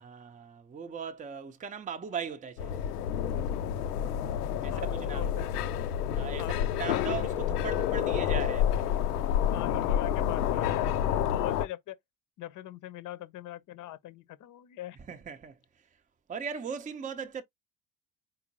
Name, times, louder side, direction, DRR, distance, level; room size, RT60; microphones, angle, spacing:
voice 1, 0.0-2.9 4.6-5.3 6.2-6.5 6.8-8.9 15.1-15.5 16.3-17.4, right 6 dB, 15° right, 0.7 m, -38 dB
sound 1, 2.6-11.7, left 10 dB, 70° left, 0.6 m, -29 dB
voice 2, 4.7-5.5 6.4-6.7 9.5-12.0 12.4-15.0, left 14 dB, 40° left, 0.8 m, -41 dB
4.3 x 3.9 x 2.8 m
figure-of-eight pair, 60°, 48 cm